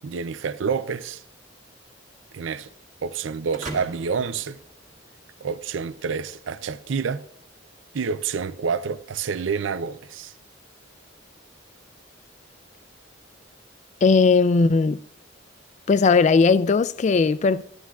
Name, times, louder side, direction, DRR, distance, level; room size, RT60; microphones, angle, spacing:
voice 1, 0.0-1.2 2.3-2.7 3.0-4.6 5.4-7.2 7.9-10.3, right 5 dB, 75° right, 0.5 m, -28 dB
sound 1, 3.5-5.5, right 2 dB, 40° right, 1.6 m, -39 dB
voice 2, 14.0-15.0 15.9-17.6, left 4 dB, 40° left, 0.3 m, -18 dB
13.5 x 11.5 x 2.3 m
head